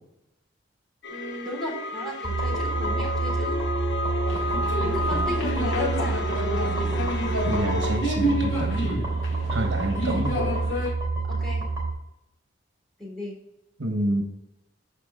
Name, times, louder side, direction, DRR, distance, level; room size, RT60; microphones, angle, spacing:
sound 1, 1.0-8.0, left 2 dB, 65° left, 1.0 m, -31 dB
voice 1, 1.1-3.6 4.8-7.0 10.1-10.2 11.3-11.6 13.0-13.3, left 1 dB, 5° left, -5 dB, 3.5 m, -35 dB
sound 2, 2.2-11.9, right 3 dB, 20° right, 3.6 m, -28 dB
sound 3, 4.3-10.9, equal, 90° left, 2.3 m, -30 dB
voice 2, 7.5-9.0 9.5-10.4 13.8-14.2, right 1 dB, 70° right, 4 dB, 1.4 m, -28 dB
14.0 x 4.7 x 3.7 m, 0.85 s
head